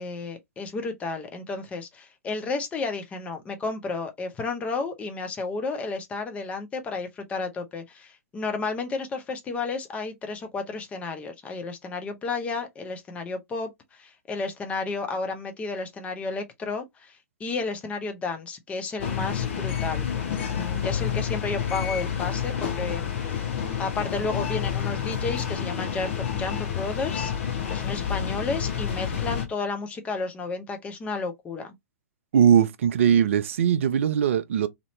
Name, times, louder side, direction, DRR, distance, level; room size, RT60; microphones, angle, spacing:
voice 1, 0.0-20.1 20.5-23.0 23.3-23.4 23.8-31.7, left 3 dB, 15° left, 0.7 m, -32 dB
sound 1, 19.0-29.5, left 8 dB, 50° left, 0.9 m, -29 dB
voice 2, 32.3-34.7, right 8 dB, 55° right, 0.4 m, -20 dB
2.8 x 2.7 x 3.0 m
figure-of-eight pair, 110°, 8 cm